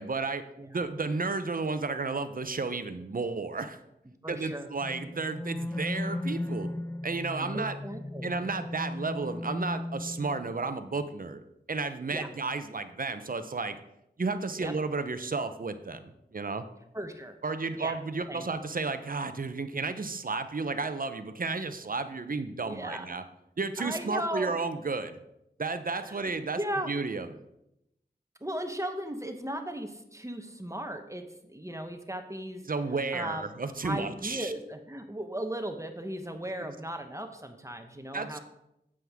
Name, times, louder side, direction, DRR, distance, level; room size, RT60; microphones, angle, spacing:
voice 1, 0.0-3.8 4.3-6.7 7.0-7.8 8.2-11.4 11.7-13.8 14.2-16.6 17.4-23.2 23.6-25.2 25.6-26.6 26.9-27.4 32.7-34.5 36.6-36.7 38.1-38.4, right 3 dB, 55° right, 10 dB, 0.7 m, -32 dB
voice 2, 4.1-4.7 7.3-8.3 12.1-12.3 14.6-14.7 16.9-17.3 17.8-18.0 18.3-18.5 22.6-23.1 23.8-24.5 26.0-26.2 26.6-26.9 28.4-32.6 33.1-33.4 33.8-38.4, right 1 dB, 15° right, 6 dB, 0.9 m, -36 dB
sound 1, 4.8-10.6, left 1 dB, 15° left, 0.3 m, -36 dB
9.2 x 7.8 x 3.6 m, 0.83 s
wide cardioid pair, 60°, 17 cm